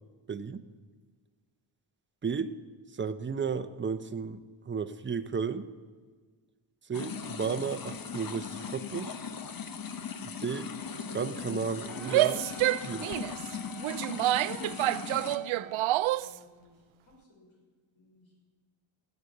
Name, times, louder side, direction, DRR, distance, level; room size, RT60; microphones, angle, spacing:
voice 1, 0.3-0.6 2.2-2.6 2.9-4.4 4.7-5.7 6.9-9.2 10.2-10.7 11.1-12.5 12.8-13.1, right 6 dB, 25° right, 10 dB, 0.8 m, -33 dB
sound 1, 6.9-15.4, left 6 dB, 45° left, 1.1 m, -39 dB
Wind instrument woodwind instrument, 11.9-16.1, left 2 dB, ahead, 1.2 m, -50 dB
Female speech woman speaking / Yell, 12.0-16.4, right 15 dB, 75° right, 0.5 m, -28 dB
voice 2, 15.3-15.8 16.2-17.6 17.9-18.5, left 3 dB, 70° left, -1 dB, 5.9 m, -60 dB
16.0 x 8.1 x 9.9 m, 1.5 s
cardioid pair, 110°, 49 cm